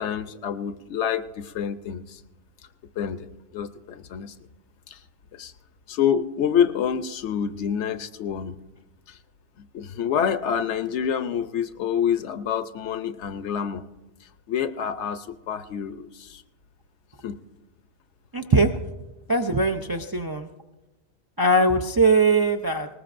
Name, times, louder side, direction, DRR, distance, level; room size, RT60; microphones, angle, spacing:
voice 1, 0.0-2.2 3.0-4.3 4.9-5.0 5.3-5.5 5.9-8.5 9.1-9.2 9.7-13.9 14.5-16.4 17.2-17.4, left 8 dB, 80° left, 11 dB, 1.0 m, -27 dB
voice 2, 18.3-18.7 19.3-20.5 21.4-22.9, right 2 dB, 35° right, 3 dB, 0.3 m, -20 dB
19.5 x 19.0 x 2.5 m, 1.1 s
omnidirectional pair, 1.2 m